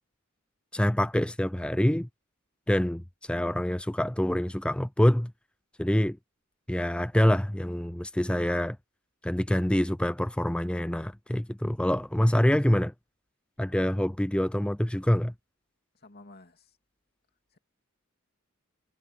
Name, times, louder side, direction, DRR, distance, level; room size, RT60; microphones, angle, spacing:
voice 1, 0.7-2.1 2.7-5.3 5.8-6.2 6.7-8.8 9.2-12.9 13.6-15.3, equal, 5° left, 0.5 m, -26 dB
voice 2, 15.9-16.8 17.5-17.6, left 2 dB, 50° left, 3.0 m, -52 dB
head